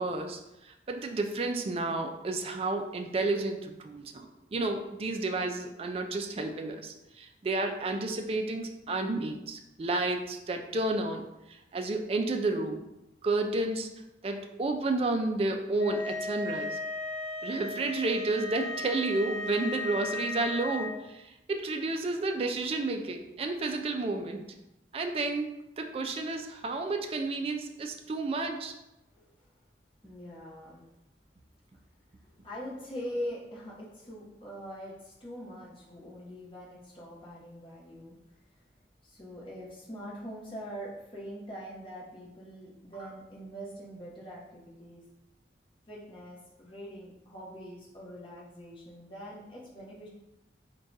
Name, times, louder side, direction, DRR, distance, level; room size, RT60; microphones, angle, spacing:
voice 1, 0.0-12.8 13.2-13.9 14.2-16.8 17.4-24.4 24.9-25.5 25.8-28.7, right 2 dB, 30° right, 5 dB, 0.3 m, -31 dB
sound 1, 15.8-20.9, left 2 dB, 75° left, 0.9 m, -36 dB
voice 2, 30.0-30.9 32.2-38.2 38.5-38.6 39.0-45.0 45.9-50.1, equal, 30° left, -5 dB, 0.9 m, -43 dB
3.7 x 2.3 x 3.9 m, 0.92 s
head